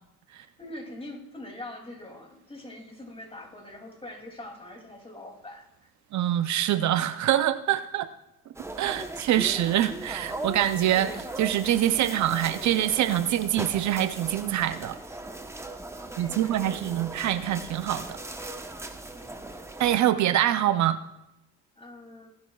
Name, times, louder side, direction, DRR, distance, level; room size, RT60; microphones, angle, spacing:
voice 1, 0.3-5.9 16.0-17.2 19.1-19.7 21.8-22.3, left 1 dB, 20° left, 2 dB, 2.8 m, -44 dB
voice 2, 6.1-8.1 8.8-15.0 16.2-18.2 19.8-21.0, right 12 dB, 70° right, 11 dB, 0.6 m, -25 dB
sound 1, 8.5-20.0, right 2 dB, 10° right, 1.0 m, -39 dB
20.0 x 10.5 x 2.4 m, 0.87 s
cardioid pair, 90°, 30 cm